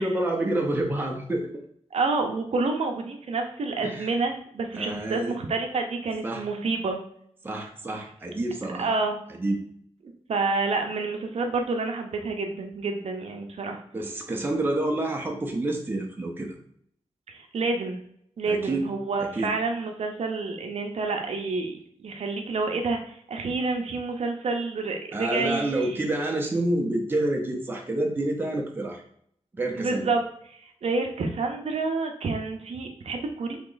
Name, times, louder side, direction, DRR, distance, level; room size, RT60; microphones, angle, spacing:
voice 1, 0.0-1.5 3.8-4.1 4.7-5.3 6.2-6.4 7.4-8.9 9.4-9.6 13.9-16.5 18.5-18.9 19.2-19.5 25.1-29.0 29.5-30.1, right 1 dB, 15° right, 1 dB, 0.6 m, -28 dB
voice 2, 1.9-7.0 8.8-9.2 10.3-13.8 17.3-18.0 18.4-26.0 29.8-30.2 30.5-33.6, right 3 dB, 65° right, 3 dB, 0.6 m, -28 dB
3.6 x 2.9 x 3.9 m, 0.66 s
wide cardioid pair, 160°, 12 cm